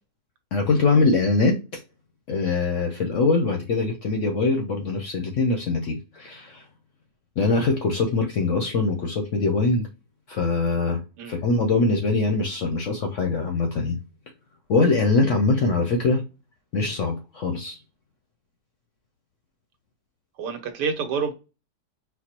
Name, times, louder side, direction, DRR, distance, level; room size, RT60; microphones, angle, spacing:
voice 1, 0.5-1.8 2.3-6.6 7.4-9.9 10.3-14.0 14.7-16.2 16.7-17.8, left 3 dB, 65° left, 0.8 m, -23 dB
voice 2, 20.4-21.3, right 5 dB, 70° right, 1.4 m, -28 dB
4.4 x 2.1 x 4.2 m
omnidirectional pair, 1.9 m